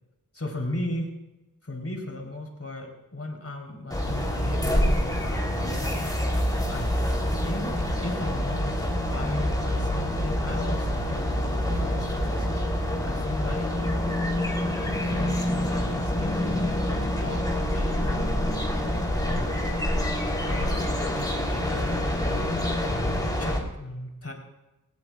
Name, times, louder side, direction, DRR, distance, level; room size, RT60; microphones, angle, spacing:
voice 1, 0.3-1.1 1.6-5.9 6.7-6.9 7.4-7.7 8.0-12.5 13.0-14.1 14.8-17.4 17.7-19.6 20.4-22.6 22.9-24.3, left 1 dB, 40° left, 1 dB, 3.8 m, -36 dB
sound 1, 3.9-23.6, left 1 dB, 10° left, 3.5 m, -26 dB
18.5 x 17.5 x 2.4 m, 1.0 s
wide cardioid pair, 55°, 35 cm